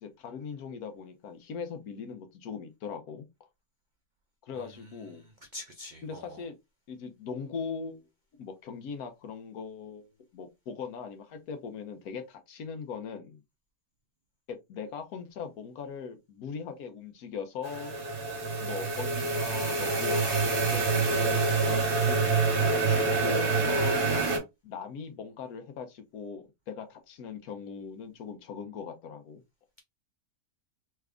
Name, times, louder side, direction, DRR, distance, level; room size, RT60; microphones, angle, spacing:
voice 1, 0.0-3.3 4.4-5.2 6.0-6.6 6.9-8.1 8.4-13.4 14.5-17.9 18.6-22.4 22.9-24.2 24.6-29.4, left 6 dB, 75° left, 1.2 m, -40 dB
voice 2, 4.5-6.4, left 1 dB, 80° right, 0.4 m, -46 dB
sound 1, 17.6-24.4, right 3 dB, 40° right, 1.2 m, -26 dB
3.3 x 2.4 x 3.4 m
omnidirectional pair, 1.6 m